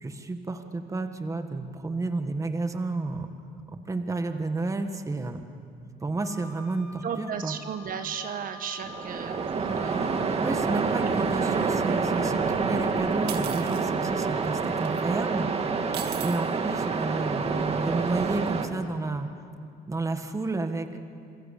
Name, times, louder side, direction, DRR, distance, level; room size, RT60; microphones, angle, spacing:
voice 1, 0.0-3.3 3.7-5.4 6.0-7.6 10.4-15.5 16.2-19.3 19.9-21.0, right 3 dB, 20° right, 7 dB, 1.7 m, -31 dB
Wind instrument woodwind instrument, 6.2-10.7, left 2 dB, 70° left, 6.5 m, -47 dB
voice 2, 7.0-10.1 11.0-11.5, right 8 dB, 55° right, 8 dB, 1.5 m, -35 dB
Waves surf, 8.8-18.7, right 5 dB, 35° right, 2.0 m, -27 dB
sound 1, 13.3-13.8 14.8-15.0 15.9-16.4, right 10 dB, 75° right, 2.0 m, -37 dB
27.5 x 21.5 x 8.5 m, 2.4 s
cardioid pair, 110°, 17 cm